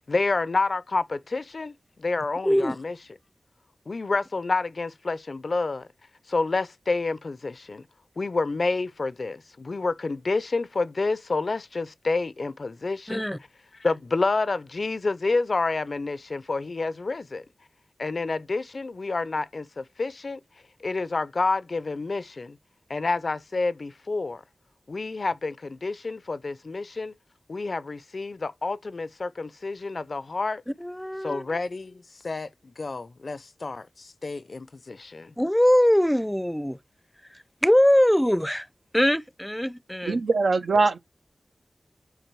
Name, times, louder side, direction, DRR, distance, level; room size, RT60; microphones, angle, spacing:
voice 1, 0.1-3.0 3.9-5.9 6.3-7.8 8.2-13.2 13.8-17.4 18.0-20.4 20.8-22.6 22.9-24.4 24.9-27.1 27.5-30.6 31.2-32.5 32.8-35.3, left 3 dB, 65° left, 0.4 m, -29 dB
voice 2, 2.4-2.8 13.1-13.4 30.8-31.4 35.4-36.8 37.6-38.6 38.9-40.2, equal, 5° left, 0.5 m, -22 dB
voice 3, 40.0-41.0, right 3 dB, 90° right, 0.5 m, -22 dB
8.0 x 3.9 x 4.6 m
cardioid pair, 50°, 0 cm